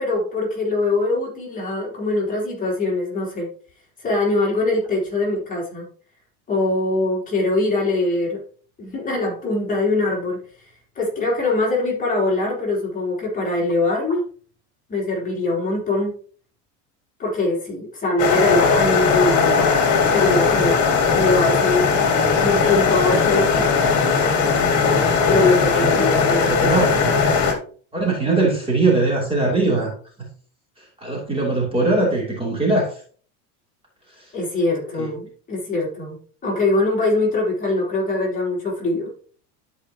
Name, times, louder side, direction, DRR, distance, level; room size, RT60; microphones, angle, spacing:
voice 1, 0.0-3.5 4.0-5.9 6.5-8.4 8.8-10.7 10.9-14.2 14.9-16.1 17.2-19.8 20.1-20.8 21.1-21.9 22.4-24.0 25.3-27.0 34.3-39.1, left 2 dB, 20° left, -3 dB, 3.2 m, -22 dB
sound 1, 18.2-27.5, left 5 dB, 50° left, 2.0 m, -18 dB
voice 2, 26.5-27.2 27.9-29.9 30.2-30.3 31.0-33.0 34.2-34.3 35.0-35.1, right 2 dB, 15° right, -2 dB, 2.9 m, -21 dB
12.0 x 5.0 x 2.9 m, 0.43 s
cardioid pair, 140°, 36 cm